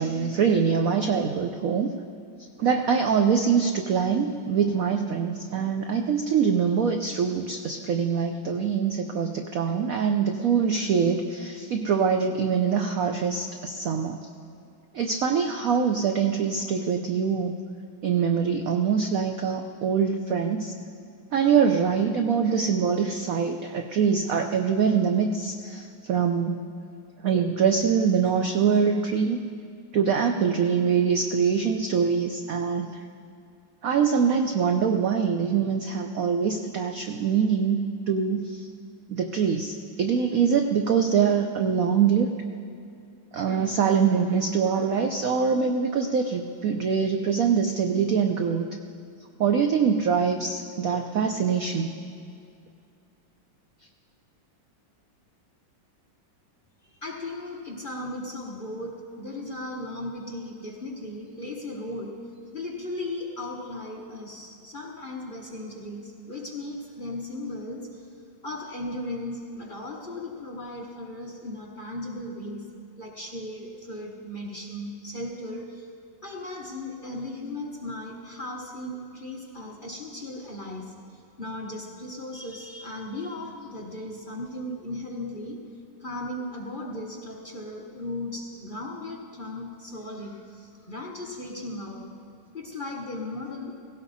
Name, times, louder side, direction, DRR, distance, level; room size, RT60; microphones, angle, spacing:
voice 1, 0.0-1.9 2.6-14.3 14.9-17.5 18.0-20.7 21.3-26.6 27.2-29.4 29.9-33.0 33.8-37.8 38.1-38.7 39.1-42.3 43.3-48.7 49.4-51.9, right 6 dB, 70° right, 5 dB, 0.8 m, -24 dB
voice 2, 56.8-62.2 62.5-68.1 68.4-72.6 73.0-75.9 76.2-85.6 86.0-92.1 92.5-93.8, left 1 dB, 35° left, -1 dB, 1.0 m, -36 dB
17.5 x 17.0 x 4.1 m, 2.4 s
omnidirectional pair, 2.2 m